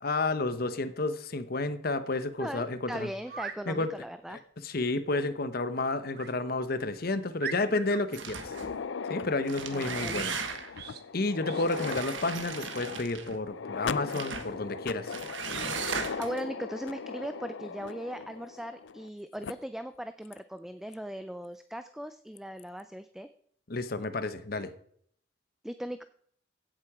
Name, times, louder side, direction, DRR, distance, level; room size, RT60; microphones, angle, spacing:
voice 1, 0.0-3.1 3.7-3.9 4.3-8.5 9.1-10.3 11.1-15.1 23.7-24.7, left 2 dB, 50° left, 12 dB, 0.9 m, -31 dB
voice 2, 2.4-4.4 9.7-10.3 16.2-23.3 25.6-26.0, equal, ahead, 10 dB, 0.4 m, -39 dB
sound 1, 3.2-3.6 6.1-6.4 6.9-7.0 7.4-8.0 10.7-11.0 11.4-11.7, right 7 dB, 55° right, 1.0 m, -40 dB
sound 2, 8.1-8.8 9.3-10.8 11.7-13.4 14.1-14.5 15.1-16.4, right 6 dB, 80° right, 1.4 m, -37 dB
sound 3, 8.3-19.1 19.4-19.5 20.3-20.4 20.9-21.0 22.4-22.6, left 5 dB, 75° left, 0.5 m, -39 dB
16.0 x 7.6 x 4.9 m, 0.64 s
head